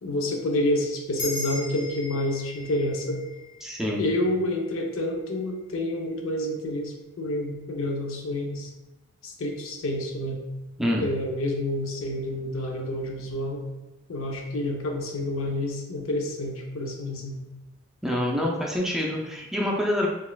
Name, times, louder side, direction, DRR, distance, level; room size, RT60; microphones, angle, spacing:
voice 1, 0.0-3.2 4.0-8.7 9.2-10.4 11.0-13.6 14.1-17.4, left 1 dB, 70° left, 2 dB, 0.6 m, -28 dB
sound 1, 1.2-5.9, left 2 dB, 30° left, 0.9 m, -39 dB
voice 2, 3.6-4.0 10.8-11.1 18.0-20.1, left 1 dB, ahead, -2 dB, 0.4 m, -26 dB
3.9 x 2.4 x 2.3 m, 1.0 s
head